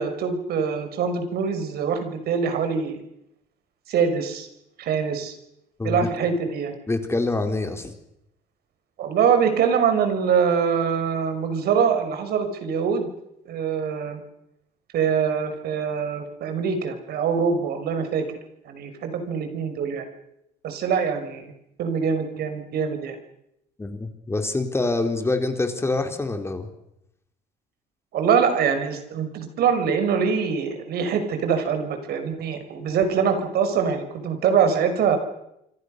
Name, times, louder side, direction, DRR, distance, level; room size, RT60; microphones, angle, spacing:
voice 1, 0.0-3.0 3.9-4.5 4.8-5.4 5.8-6.8 9.0-13.1 13.5-14.2 14.9-18.4 18.6-20.1 20.6-21.5 21.8-23.2 28.1-35.2, right 6 dB, 70° right, 8 dB, 5.8 m, -24 dB
voice 2, 6.9-7.9 23.8-26.7, left 2 dB, 15° left, 6 dB, 3.8 m, -25 dB
27.0 x 25.5 x 6.7 m, 0.82 s
cardioid pair, 110°, 17 cm